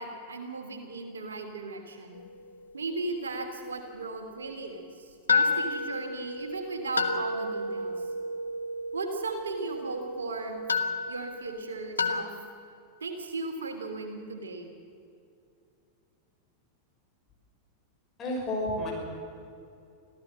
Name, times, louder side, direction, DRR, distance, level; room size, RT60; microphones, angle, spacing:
voice 1, 0.0-2.2 2.7-8.1 8.9-10.6 11.1-12.3 13.0-14.7, right 3 dB, 70° right, 5 dB, 3.0 m, -36 dB
sound 1, 2.1-3.8 4.1-4.2 5.3-12.2, left 3 dB, 75° left, 1.1 m, -31 dB
voice 2, 18.2-18.9, left 1 dB, 25° left, -2 dB, 6.3 m, -30 dB
25.5 x 15.5 x 7.7 m, 2.5 s
figure-of-eight pair, 90°, 0 cm